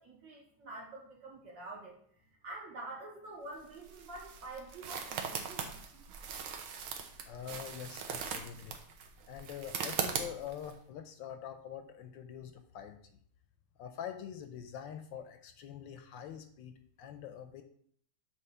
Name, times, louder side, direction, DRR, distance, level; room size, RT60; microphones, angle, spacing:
voice 1, 0.0-2.0 2.4-5.8, right 2 dB, 65° right, -2 dB, 2.5 m, -47 dB
Walking on twigs, 3.5-10.7, right 7 dB, 90° right, 1.6 m, -40 dB
voice 2, 7.3-8.7 9.3-13.0 13.8-17.6, left 9 dB, 75° left, 7 dB, 1.2 m, -45 dB
7.8 x 3.0 x 5.5 m, 0.62 s
omnidirectional pair, 2.2 m